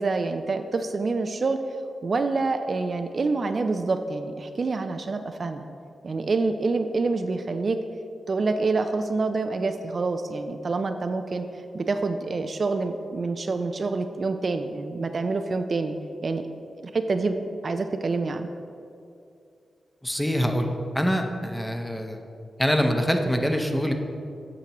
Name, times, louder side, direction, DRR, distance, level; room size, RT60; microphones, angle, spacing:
voice 1, 0.0-1.6 2.0-5.7 6.0-7.8 8.3-11.5 11.7-15.9 16.2-16.4 16.8-17.4 17.6-18.5, right 3 dB, 55° right, 7 dB, 0.3 m, -27 dB
voice 2, 20.0-20.7 20.9-22.2 22.6-23.9, equal, 5° left, 4 dB, 0.7 m, -24 dB
8.7 x 5.9 x 2.9 m, 2.5 s
cardioid pair, 55°, 0 cm